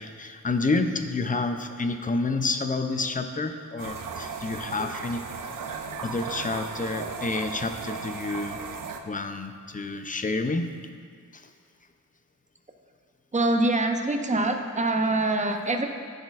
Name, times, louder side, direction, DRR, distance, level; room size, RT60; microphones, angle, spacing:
voice 1, 0.0-5.2 6.0-8.6 9.0-10.7 11.3-11.4, left 3 dB, 25° left, 7 dB, 0.5 m, -29 dB
sound 1, 3.8-9.0, right 5 dB, 75° right, 0.6 m, -36 dB
voice 2, 13.3-15.9, right 2 dB, 20° right, 4 dB, 0.6 m, -24 dB
14.5 x 6.4 x 2.4 m, 2.1 s
wide cardioid pair, 125°, 32 cm